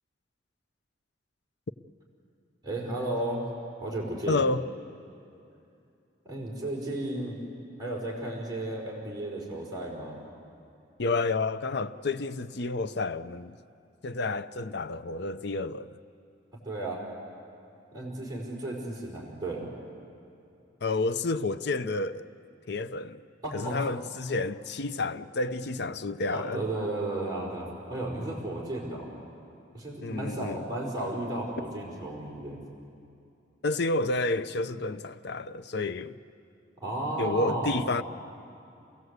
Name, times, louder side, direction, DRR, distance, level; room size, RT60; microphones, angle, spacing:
voice 1, 2.6-3.4 3.8-4.4 6.2-7.4 7.8-10.2 16.6-17.0 17.9-19.7 23.4-23.8 26.3-29.1 29.7-32.6 36.8-37.8, right 1 dB, 20° right, 4.6 m, -33 dB
voice 2, 4.3-4.6 11.0-13.6 14.0-16.0 20.8-22.3 22.7-23.2 23.5-26.6 30.0-30.7 33.6-36.2 37.2-38.0, left 3 dB, 65° left, 0.7 m, -30 dB
29.5 x 16.5 x 8.1 m
head